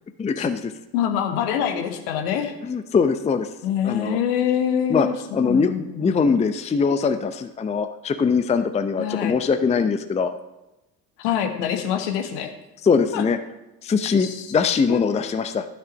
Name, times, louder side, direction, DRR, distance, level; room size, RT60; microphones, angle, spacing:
voice 1, 0.2-0.7 2.6-3.5 3.8-4.2 4.9-5.1 5.3-10.3 12.8-13.4 13.8-15.7, left 5 dB, 15° left, 9 dB, 0.6 m, -22 dB
voice 2, 0.9-2.5 3.6-6.2 9.0-9.3 11.2-12.5 13.1-13.2 14.2-14.5 14.9-15.0, left 9 dB, 65° left, 6 dB, 1.5 m, -25 dB
11.5 x 6.5 x 5.2 m, 0.98 s
hypercardioid pair, 65°, 50 cm